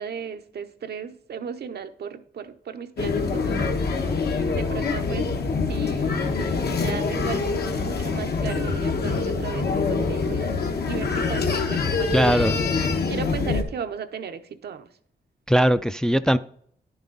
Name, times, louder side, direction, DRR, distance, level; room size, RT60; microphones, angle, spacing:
voice 1, 0.0-3.7 4.5-5.4 5.7-10.6 10.8-12.7 13.1-14.9, right 7 dB, 80° right, 0.8 m, -35 dB
sound 1, 3.0-13.6, left 4 dB, 75° left, 1.2 m, -25 dB
voice 2, 12.1-12.6 15.5-16.4, equal, 5° left, 0.3 m, -19 dB
10.5 x 7.1 x 3.9 m
wide cardioid pair, 105°, 17 cm